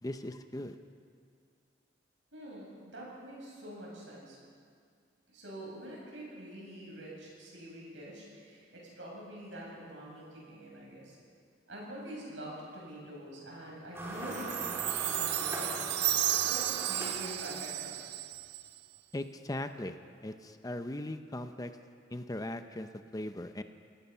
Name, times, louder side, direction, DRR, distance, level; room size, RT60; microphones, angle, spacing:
voice 1, 0.0-0.8 19.1-20.0 20.2-21.7 22.1-23.6, left 1 dB, 20° left, 8 dB, 0.7 m, -39 dB
voice 2, 2.3-4.4 5.3-11.2 11.7-18.0, right 1 dB, 80° right, -3 dB, 8.0 m, -45 dB
sound 1, 13.9-17.9, right 1 dB, 15° right, 4.2 m, -40 dB
Chime, 14.3-18.8, right 14 dB, 60° right, 0.5 m, -33 dB
27.5 x 18.5 x 5.7 m, 2.2 s
head